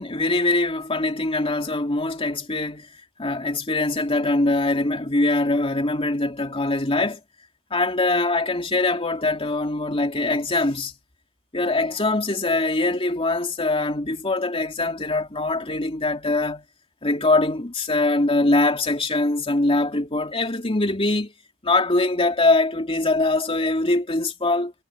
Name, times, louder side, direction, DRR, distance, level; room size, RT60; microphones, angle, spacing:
voice 1, 0.0-2.9 3.2-7.2 7.7-10.9 11.5-16.6 17.0-21.3 21.6-24.7, left 2 dB, 25° left, 2.8 m, -22 dB
head